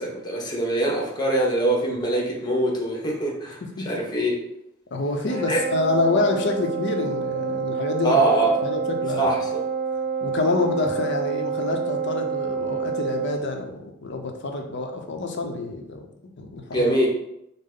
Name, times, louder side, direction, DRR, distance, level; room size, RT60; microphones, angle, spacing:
voice 1, 0.0-4.3 5.5-5.6 8.0-8.5 9.2-9.6 16.7-17.1, right 1 dB, 20° left, -1 dB, 0.9 m, -23 dB
voice 2, 4.9-8.2 8.5-9.3 10.2-16.1 16.4-17.1, left 2 dB, 60° left, 3 dB, 0.6 m, -27 dB
Wind instrument woodwind instrument, 5.2-13.4, right 6 dB, 40° right, 1.0 m, -28 dB
5.3 x 2.0 x 3.7 m, 0.81 s
head